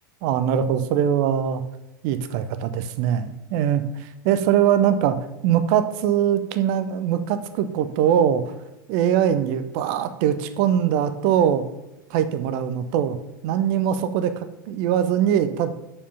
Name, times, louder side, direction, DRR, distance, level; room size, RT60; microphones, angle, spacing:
voice 1, 0.2-1.6 2.0-3.8 4.2-5.2 5.4-8.4 8.9-11.6 12.1-13.2 13.4-15.7, right 9 dB, 45° right, 11 dB, 0.7 m, -22 dB
6.5 x 5.6 x 5.5 m, 0.97 s
figure-of-eight pair, 80°, 11 cm